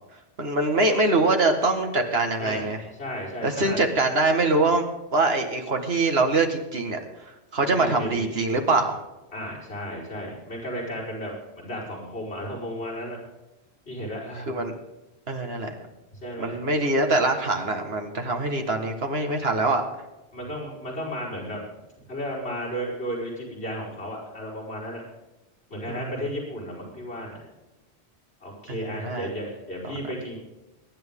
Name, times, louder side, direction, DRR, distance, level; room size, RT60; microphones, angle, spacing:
voice 1, 0.4-2.8 3.4-4.8 5.1-7.0 7.5-9.0 14.5-14.7 15.3-15.9 16.4-19.8 25.9-26.1 28.7-29.3, right 2 dB, 65° right, 4 dB, 2.0 m, -23 dB
voice 2, 2.4-2.7 3.0-3.8 7.6-8.3 9.3-13.2 13.9-14.6 16.2-16.6 20.3-21.6 22.1-25.0 25.7-27.4 28.4-30.4, equal, 70° left, -7 dB, 5.1 m, -34 dB
23.0 x 11.0 x 3.8 m, 1.0 s
omnidirectional pair, 1.1 m